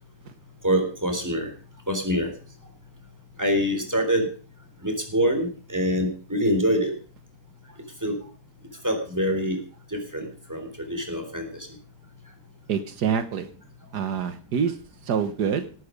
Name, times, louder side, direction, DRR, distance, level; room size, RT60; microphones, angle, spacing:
voice 1, 0.6-1.5 1.9-2.3 3.4-4.3 4.8-6.9 8.0-8.2 8.8-9.6 9.9-11.7, equal, 10° right, 4 dB, 3.8 m, -25 dB
voice 2, 12.7-13.5 13.9-14.8 15.0-15.7, right 7 dB, 80° right, 10 dB, 1.7 m, -26 dB
18.0 x 9.5 x 5.2 m, 0.40 s
omnidirectional pair, 1.7 m